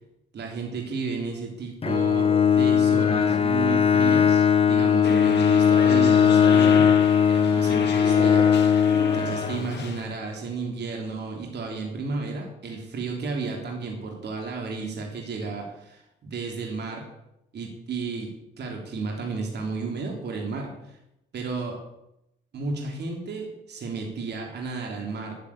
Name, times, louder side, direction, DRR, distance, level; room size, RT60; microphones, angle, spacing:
voice 1, 0.3-8.5 9.1-17.1 17.5-21.0 21.3-21.8 22.5-25.4, right 4 dB, 60° right, 1 dB, 3.3 m, -33 dB
Bowed string instrument, 1.8-10.0, left 7 dB, 30° left, 0.9 m, -19 dB
sound 1, 5.0-10.1, left 6 dB, 60° left, 2.1 m, -34 dB
11.0 x 9.4 x 8.7 m, 0.84 s
cardioid pair, 90°, 20 cm